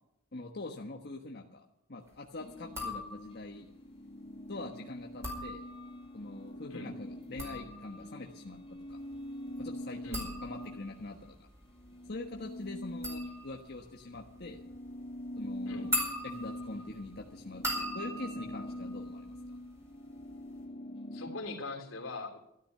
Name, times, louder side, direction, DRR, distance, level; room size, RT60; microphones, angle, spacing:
voice 1, 0.3-1.6 1.9-3.7 4.5-5.6 6.1-9.0 9.6-11.3 12.1-14.6 15.4-19.3, left 2 dB, 50° left, 1 dB, 1.3 m, -44 dB
sound 1, 2.4-11.3 11.6-21.4, left 1 dB, 25° left, 1.4 m, -44 dB
sound 2, 2.6-3.5 5.0-6.1 7.1-19.8 20.1-20.6, equal, 15° right, 5.0 m, -41 dB
voice 2, 21.1-22.4, left 3 dB, 80° left, 3 dB, 3.4 m, -41 dB
13.0 x 13.0 x 6.7 m, 0.77 s
head